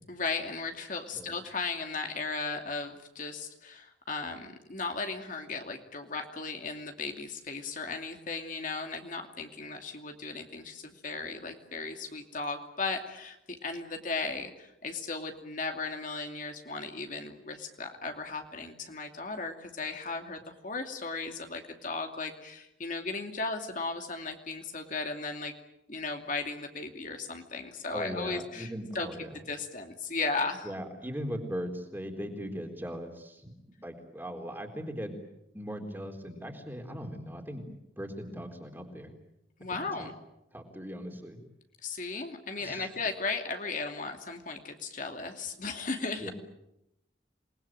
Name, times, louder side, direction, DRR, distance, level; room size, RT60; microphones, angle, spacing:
voice 1, 0.1-25.5 25.9-29.1 29.5-30.7 39.6-40.1 41.8-46.3, left 3 dB, 45° left, 4 dB, 2.6 m, -36 dB
voice 2, 27.9-29.3 30.6-33.5 33.8-35.2 35.5-37.6 38.0-39.1 39.7-40.1 40.5-41.4 42.6-42.9 46.2-46.3, equal, 10° right, 3 dB, 3.9 m, -39 dB
28.5 x 21.0 x 9.1 m, 0.85 s
head